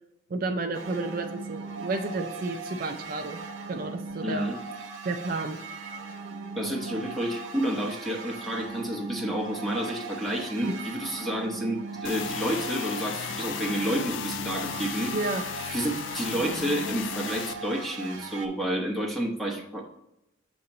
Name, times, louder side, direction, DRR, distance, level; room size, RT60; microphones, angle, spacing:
voice 1, 0.3-3.4 3.7-4.6 5.0-5.6 10.6-10.8 15.1-15.4, right 3 dB, 45° right, 5 dB, 0.4 m, -31 dB
sound 1, 0.7-18.5, right 4 dB, 80° right, 0.8 m, -39 dB
voice 2, 4.2-4.6 6.6-15.1 15.7-19.8, right 1 dB, ahead, 0 dB, 0.8 m, -30 dB
sound 2, 12.0-17.5, left 8 dB, 65° left, 0.3 m, -35 dB
6.8 x 2.9 x 5.1 m, 0.87 s
head